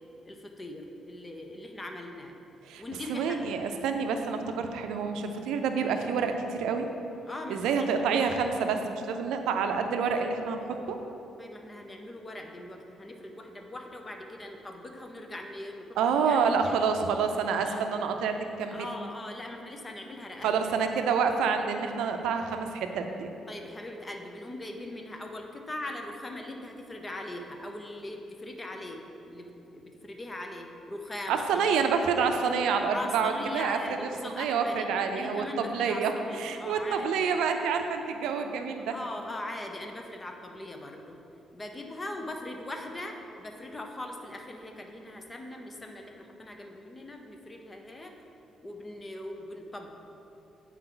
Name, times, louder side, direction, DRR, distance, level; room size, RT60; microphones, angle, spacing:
voice 1, 0.2-2.4 2.8-3.3 7.3-8.1 11.4-16.5 16.8-16.9 17.6-17.9 18.7-20.5 20.8-20.9 23.5-31.9 32.9-34.9 35.1-36.0 36.3-37.3 38.9-41.2 41.5-48.1 48.6-49.9, left 1 dB, 25° left, 3 dB, 0.7 m, -40 dB
voice 2, 3.1-6.9 7.5-11.0 16.0-18.9 20.4-23.3 31.3-39.0, right 5 dB, 90° right, 6 dB, 0.5 m, -28 dB
8.9 x 4.6 x 3.9 m, 2.9 s
cardioid pair, 90°, 0 cm